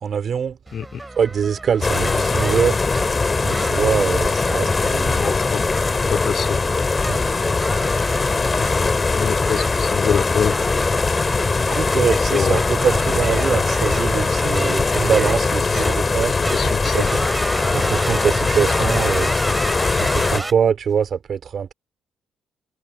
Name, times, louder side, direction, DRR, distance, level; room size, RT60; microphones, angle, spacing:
voice 1, 0.0-0.6 1.2-2.8 3.4-5.3 7.1-7.2 11.7-17.0 17.7-19.3 20.0-21.7, right 7 dB, 55° right, 3.0 m, -23 dB
sound 1, 0.7-20.5, right 2 dB, 20° right, 5.3 m, -32 dB
sound 2, 1.8-20.4, left 4 dB, 30° left, 2.6 m, -21 dB
voice 2, 5.1-5.6 6.1-6.6 7.1-7.2 8.3-8.9 9.1-10.6 12.3-12.6 15.7-16.0 16.3-17.1, left 8 dB, 55° left, 3.4 m, -26 dB
hypercardioid pair, 50°, 0 cm